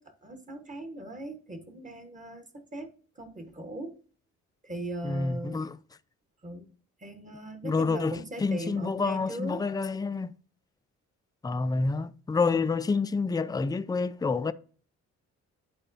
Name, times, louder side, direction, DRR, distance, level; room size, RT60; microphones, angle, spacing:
voice 1, 0.0-2.9 3.1-4.0 4.6-5.7 6.4-6.7 7.0-9.6 12.4-12.6, right 1 dB, 25° right, 1.5 m, -39 dB
voice 2, 5.0-5.8 7.6-10.3 11.4-14.5, left 4 dB, 15° left, 0.4 m, -28 dB
11.0 x 4.3 x 2.8 m
cardioid pair, 90°, 30 cm